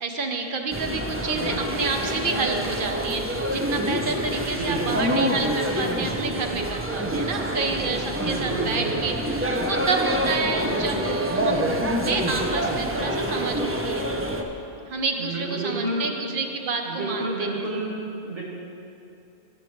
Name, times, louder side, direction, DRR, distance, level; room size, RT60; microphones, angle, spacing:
voice 1, 0.0-14.1 14.9-17.6, right 3 dB, 50° right, 4 dB, 0.9 m, -29 dB
sound 1, 0.7-14.4, right 1 dB, 20° right, 0.3 m, -26 dB
voice 2, 4.6-5.4 8.3-9.1 15.2-16.1 16.8-18.0 18.2-18.4, right 2 dB, 85° right, -4 dB, 2.0 m, -30 dB
15.5 x 7.4 x 3.1 m, 2.7 s
omnidirectional pair, 1.2 m